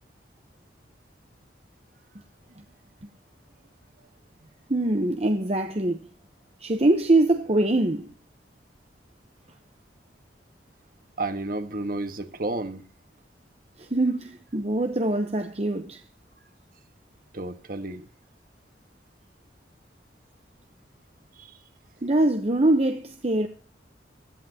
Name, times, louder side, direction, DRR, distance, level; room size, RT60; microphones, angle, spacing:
voice 1, 4.7-6.0 6.6-8.1 13.8-16.0 22.0-23.5, right 2 dB, 35° right, 1.0 m, -23 dB
voice 2, 11.2-12.8 17.3-18.1 21.4-21.5, right 2 dB, 50° right, 1.6 m, -31 dB
16.0 x 13.5 x 2.9 m
head